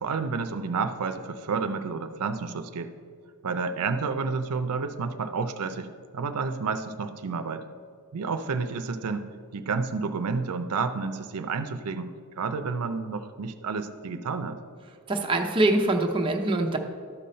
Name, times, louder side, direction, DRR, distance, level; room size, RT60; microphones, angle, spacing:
voice 1, 0.0-2.9 3.4-7.6 8.1-14.6, right 4 dB, 90° right, 9 dB, 0.5 m, -30 dB
voice 2, 15.1-16.8, right 2 dB, 25° right, 2 dB, 0.7 m, -24 dB
13.0 x 5.4 x 4.3 m, 2.1 s
head